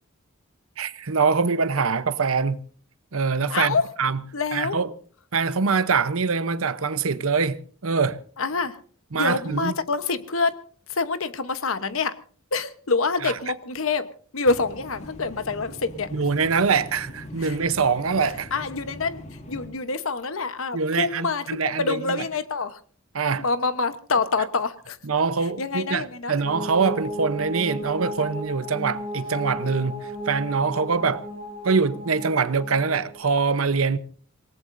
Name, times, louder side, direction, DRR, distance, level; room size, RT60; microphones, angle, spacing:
voice 1, 0.8-2.6 3.1-4.2 4.5-4.9 5.3-8.2 9.1-9.7 13.2-13.3 16.1-18.5 20.7-22.2 23.1-23.4 25.1-31.2 31.6-34.0, right 5 dB, 80° right, 0.9 m, -24 dB
voice 2, 3.5-3.9 4.3-4.8 8.4-8.8 9.1-10.6 10.9-12.2 12.5-16.1 17.4-17.6 18.5-22.8 23.4-25.0 25.4-26.3, left 4 dB, 75° left, 1.1 m, -26 dB
sound 1, 14.5-19.7, left 1 dB, 35° left, 2.4 m, -41 dB
sound 2, 26.4-33.2, right 1 dB, 30° right, 6.1 m, -34 dB
26.5 x 18.0 x 2.6 m
head